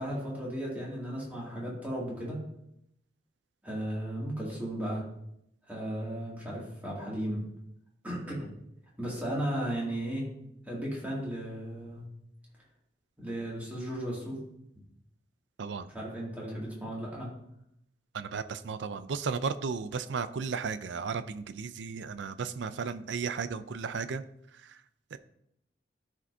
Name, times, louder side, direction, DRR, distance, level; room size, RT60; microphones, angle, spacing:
voice 1, 0.0-2.4 3.6-5.0 5.7-7.5 8.0-8.5 9.0-10.3 10.6-12.0 13.2-14.4 15.9-17.3, right 1 dB, 10° right, -6 dB, 2.3 m, -35 dB
voice 2, 18.1-24.2 24.6-24.8 25.1-25.2, right 5 dB, 80° right, 12 dB, 0.4 m, -34 dB
13.0 x 5.1 x 2.7 m, 0.78 s
head